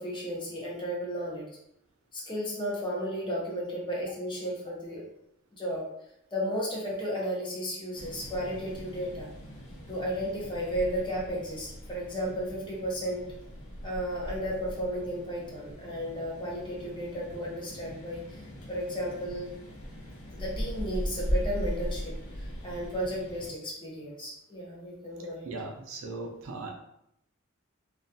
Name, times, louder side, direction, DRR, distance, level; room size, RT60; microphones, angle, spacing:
voice 1, 0.0-1.5 2.1-5.0 5.5-5.8 6.3-9.3 9.9-13.2 13.8-18.4 18.7-19.5 20.3-22.1 22.6-25.5, equal, 25° left, -4 dB, 0.7 m, -34 dB
sound 1, 7.9-23.5, equal, 80° left, 0.6 m, -39 dB
voice 2, 25.4-26.7, right 3 dB, 70° right, 0 dB, 0.5 m, -38 dB
2.3 x 2.2 x 2.6 m, 0.79 s
head